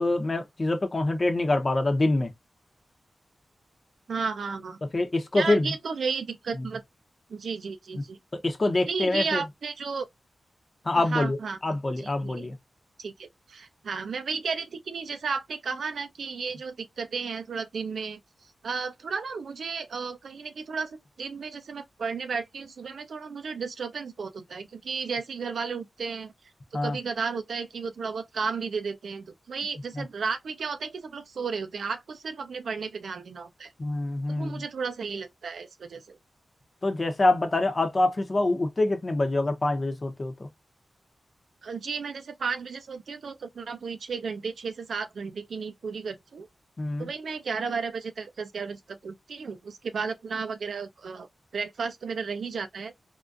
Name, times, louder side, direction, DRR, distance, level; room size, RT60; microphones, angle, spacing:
voice 1, 0.0-2.3 4.9-5.7 8.3-9.4 10.8-11.4 11.6-12.6 26.7-27.0 29.9-30.0 33.8-34.6 36.8-40.5 46.8-47.1, left 2 dB, 45° left, 0.8 m, -25 dB
voice 2, 4.1-4.8 5.3-6.8 7.3-8.2 8.9-10.1 10.9-11.6 12.0-12.5 13.0-18.2 18.6-26.3 26.7-33.7 34.4-36.2 41.6-46.5 47.0-51.3 51.5-52.9, right 5 dB, 80° right, 0.6 m, -33 dB
3.6 x 2.5 x 2.5 m
cardioid pair, 45°, 0 cm